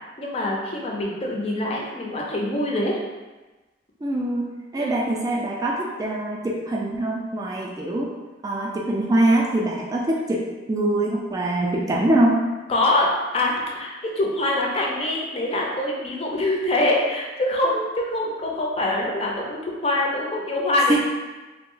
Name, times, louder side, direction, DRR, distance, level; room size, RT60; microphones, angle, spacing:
voice 1, 0.2-3.0 4.7-5.0 12.7-21.0, left 1 dB, 35° left, -2 dB, 0.5 m, -24 dB
voice 2, 4.0-4.5 4.7-8.1 8.4-10.4 10.7-12.4 20.9-21.0, right 1 dB, 20° right, -2 dB, 0.3 m, -23 dB
3.2 x 2.0 x 3.7 m, 1.2 s
head